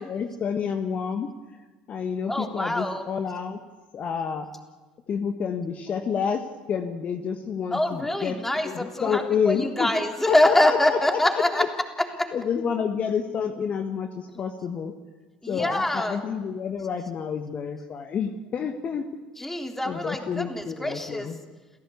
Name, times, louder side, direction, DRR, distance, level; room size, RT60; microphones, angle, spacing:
voice 1, 0.1-1.3 1.9-3.6 3.9-4.5 5.1-9.9 10.3-11.7 12.3-14.9 15.5-19.0 19.8-21.4, left 7 dB, 40° left, 7 dB, 1.5 m, -29 dB
voice 2, 2.3-3.0 7.7-11.6 12.0-12.3 15.4-16.2 19.4-21.3, left 1 dB, 10° left, 3 dB, 3.5 m, -25 dB
29.5 x 16.0 x 8.5 m, 1.3 s
figure-of-eight pair, 65°, 4 cm